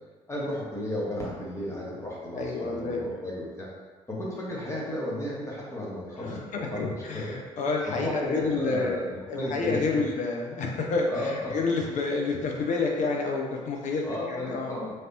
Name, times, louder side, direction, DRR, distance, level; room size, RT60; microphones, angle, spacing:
voice 1, 0.3-3.7 4.1-7.4 7.9-10.0 11.1-11.6 14.0-14.9, left 1 dB, 15° left, -6 dB, 0.9 m, -34 dB
voice 2, 2.4-3.1 6.2-9.0 9.3-14.8, left 3 dB, 45° left, 0 dB, 0.6 m, -29 dB
3.2 x 2.6 x 2.8 m, 1.4 s
figure-of-eight pair, 45°, 17 cm